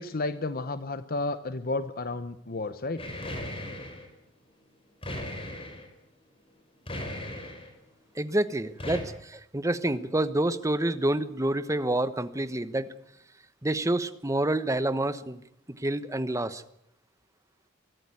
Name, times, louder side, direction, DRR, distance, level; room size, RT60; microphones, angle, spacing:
voice 1, 0.0-3.1, left 2 dB, 50° left, 12 dB, 0.9 m, -32 dB
sound 1, 3.0-4.1 5.0-5.9 6.9-7.7 8.8-9.0, left 1 dB, 30° left, 5.2 m, -37 dB
voice 2, 8.2-12.9 13.6-15.4 15.8-16.6, right 1 dB, 15° right, 12 dB, 1.0 m, -28 dB
23.0 x 14.5 x 9.5 m, 0.75 s
head